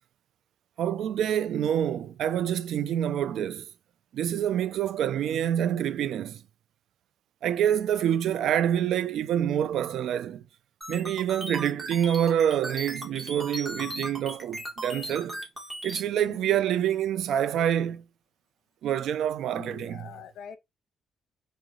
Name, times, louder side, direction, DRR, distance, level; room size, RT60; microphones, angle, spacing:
voice 1, 0.8-3.6 4.1-6.4 7.4-10.4 10.9-15.4 15.8-18.0 18.8-20.1, right 10 dB, 80° right, 0.5 m, -27 dB
sound 1, 10.8-16.0, right 1 dB, 10° right, 1.9 m, -37 dB
voice 2, 16.2-16.6 19.6-20.6, left 8 dB, 80° left, 1.0 m, -44 dB
3.8 x 3.2 x 3.9 m
cardioid pair, 120°, 0 cm